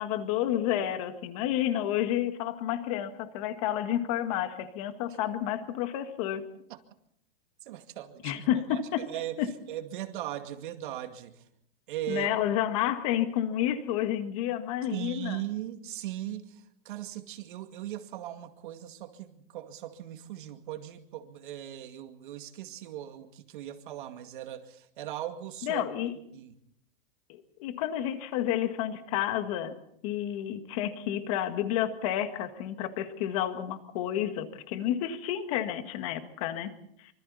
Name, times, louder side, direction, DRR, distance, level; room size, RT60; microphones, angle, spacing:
voice 1, 0.0-6.4 8.2-9.1 9.4-9.5 12.1-15.4 25.6-26.1 27.3-29.7 30.0-36.7, left 11 dB, 35° left, 9 dB, 1.8 m, -30 dB
voice 2, 7.7-8.3 8.7-9.4 9.7-11.3 11.9-12.3 14.9-16.5 16.9-25.8 26.3-26.5, right 13 dB, 55° right, 7 dB, 2.2 m, -38 dB
25.5 x 25.0 x 4.2 m, 0.70 s
supercardioid pair, 170°, 31 cm